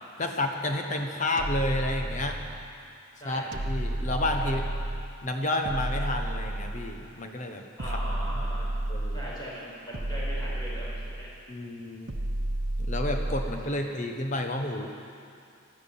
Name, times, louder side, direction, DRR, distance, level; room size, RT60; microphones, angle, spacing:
voice 1, 0.2-2.4 3.2-4.6 5.2-8.0 8.9-9.1 11.5-12.1 12.8-14.9, left 1 dB, 35° left, 4 dB, 1.2 m, -30 dB
sound 1, 1.4-2.7 3.5-5.1 5.6-7.1 7.8-9.4 9.9-11.3 12.1-13.7, right 1 dB, 65° right, 0.9 m, -31 dB
voice 2, 7.8-8.7 9.1-11.3 13.6-13.9, equal, 20° left, -7 dB, 5.0 m, -40 dB
12.5 x 12.5 x 8.7 m, 2.4 s
head